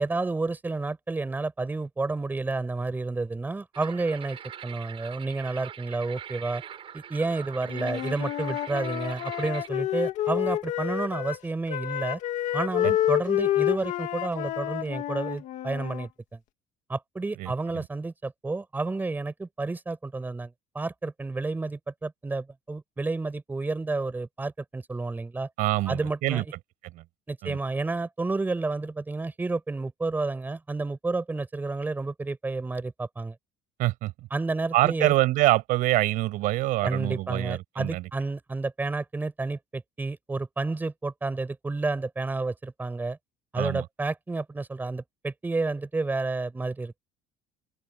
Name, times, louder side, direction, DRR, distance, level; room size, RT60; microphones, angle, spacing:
voice 1, 0.0-6.6 6.9-12.2 12.5-16.4 16.9-25.5 25.9-26.5 27.3-33.3 34.3-35.1 36.8-43.2 43.5-47.0, right 3 dB, 15° right, 4.8 m, -30 dB
sound 1, 3.7-9.7, right 9 dB, 40° right, 6.2 m, -42 dB
Wind instrument woodwind instrument, 7.7-11.4 11.7-16.1, left 13 dB, 60° left, 2.1 m, -29 dB
voice 2, 17.4-17.9 25.6-26.4 26.9-27.0 27.4-27.6 33.8-34.1 34.7-38.1 43.6-43.9, right 18 dB, 70° right, 6.9 m, -25 dB
open air
cardioid pair, 150°, 14 cm